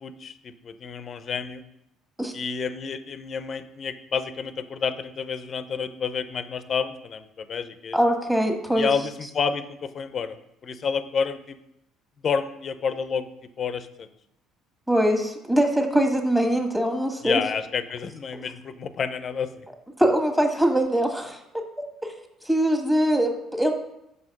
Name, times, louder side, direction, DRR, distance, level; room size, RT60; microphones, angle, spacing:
voice 1, 0.0-1.6 2.3-8.0 8.8-10.3 10.6-11.6 12.2-13.3 13.6-14.1 17.2-19.5, left 6 dB, 45° left, 11 dB, 0.7 m, -29 dB
voice 2, 7.9-8.9 14.9-17.4 20.0-21.4 21.8-22.1 22.5-23.7, right 1 dB, 5° right, 3 dB, 1.8 m, -22 dB
5.7 x 5.6 x 6.0 m, 0.83 s
hypercardioid pair, 60°, 0 cm